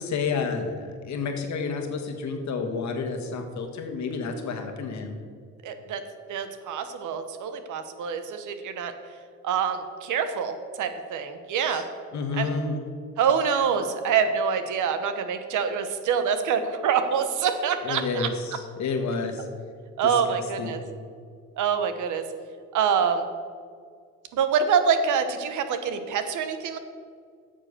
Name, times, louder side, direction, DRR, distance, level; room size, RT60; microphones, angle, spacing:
voice 1, 0.0-5.2 11.7-11.8 12.1-12.8 17.8-19.5 20.0-20.8, left 4 dB, 65° left, 5 dB, 1.5 m, -30 dB
voice 2, 5.6-6.0 6.3-8.9 9.4-11.8 12.4-12.5 13.2-18.3 20.0-20.8 21.6-22.2 22.7-23.3 24.3-26.8, right 7 dB, 80° right, 9 dB, 1.1 m, -25 dB
8.9 x 6.6 x 6.8 m, 2.1 s
cardioid pair, 90°, 30 cm